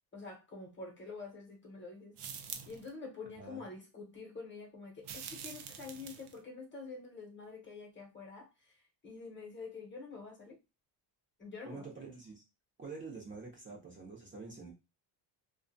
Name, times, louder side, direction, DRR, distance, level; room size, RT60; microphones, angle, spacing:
voice 1, 0.1-8.5 9.0-10.6 11.4-11.9, left 4 dB, 25° left, 0.9 m, -47 dB
sound 1, 2.2-2.9 5.0-6.4, right 7 dB, 60° right, 0.6 m, -45 dB
voice 2, 11.6-12.4 12.8-14.7, right 4 dB, 25° right, 0.7 m, -47 dB
2.3 x 2.2 x 2.6 m
cardioid pair, 130°, 47 cm